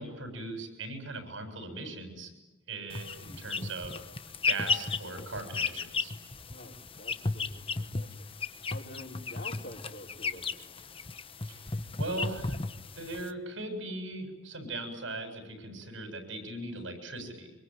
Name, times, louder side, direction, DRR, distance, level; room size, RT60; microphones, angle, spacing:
voice 1, 0.0-2.3 2.7-3.9 4.4-6.1 11.4-12.6 13.0-17.5, right 2 dB, 85° right, 6 dB, 7.4 m, -39 dB
sound 1, 2.9-13.3, left 4 dB, 30° left, 1.1 m, -35 dB
voice 2, 6.3-11.0 16.8-16.9 17.2-17.3, left 1 dB, 55° left, 0 dB, 5.6 m, -48 dB
26.0 x 24.5 x 9.4 m, 1.1 s
head